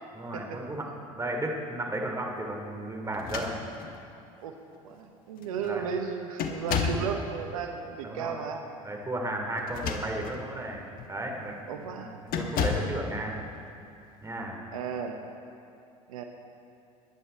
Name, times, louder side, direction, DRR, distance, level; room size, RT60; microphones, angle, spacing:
voice 1, 0.1-3.6 5.6-5.8 8.0-8.3 8.8-12.1 12.3-13.4 14.2-14.6, right 1 dB, 20° right, 1 dB, 2.7 m, -34 dB
sound 1, 3.1-4.0 4.9-5.0 5.4-5.7 6.4-7.1 9.6-10.4 11.0-11.2 12.3-13.0, left 5 dB, 55° left, 1.4 m, -31 dB
voice 2, 4.8-8.6 11.7-12.1 14.7-15.2 16.1-16.2, right 6 dB, 80° right, 5 dB, 0.9 m, -34 dB
19.5 x 10.0 x 4.5 m, 2.7 s
hypercardioid pair, 70°, 18 cm